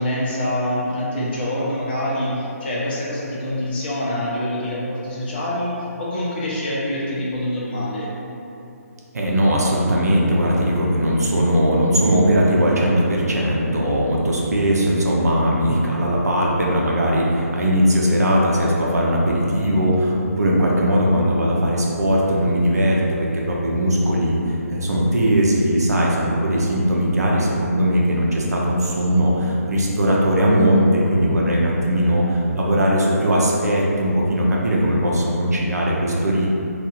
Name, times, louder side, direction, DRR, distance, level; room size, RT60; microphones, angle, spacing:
voice 1, 0.0-5.7 6.0-8.1, left 1 dB, 35° left, -6 dB, 0.7 m, -25 dB
voice 2, 9.1-36.5, equal, 80° right, -3 dB, 0.7 m, -19 dB
2.6 x 2.5 x 4.1 m, 2.8 s
hypercardioid pair, 165°, 9 cm